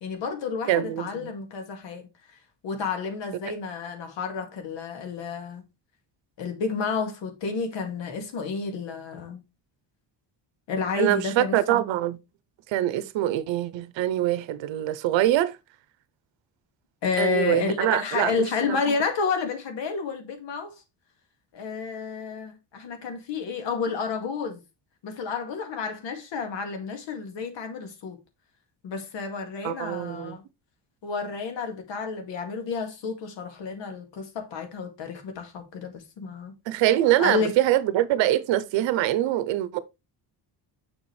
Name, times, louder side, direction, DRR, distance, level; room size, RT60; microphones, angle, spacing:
voice 1, 0.0-2.1 2.6-5.6 6.4-9.4 10.7-11.8 17.0-20.7 21.5-24.6 25.0-28.2 28.8-30.4 31.0-36.5 37.2-37.5, left 5 dB, 75° left, 2.1 m, -30 dB
voice 2, 0.7-1.3 11.0-12.2 12.7-15.6 17.2-18.3 18.7-18.8 29.6-30.4 36.7-39.8, right 13 dB, 85° right, 0.7 m, -24 dB
6.9 x 5.9 x 3.2 m
cardioid pair, 120°, 44 cm